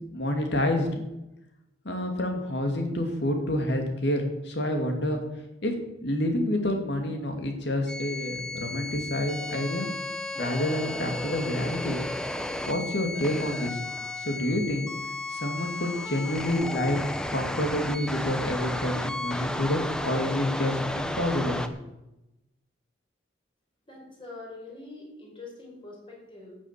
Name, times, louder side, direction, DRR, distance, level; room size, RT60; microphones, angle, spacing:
voice 1, 0.1-1.0 1.8-5.2 5.6-5.7 6.0-9.9 10.4-12.0 12.6-13.8 14.2-14.9 15.3-17.0 17.3-21.8, left 1 dB, 65° left, 4 dB, 2.6 m, -28 dB
sound 1, 7.9-21.7, left 2 dB, 5° left, 0.7 m, -33 dB
voice 2, 23.9-26.6, left 3 dB, 25° left, -2 dB, 4.7 m, -44 dB
13.5 x 7.6 x 7.6 m, 0.94 s
head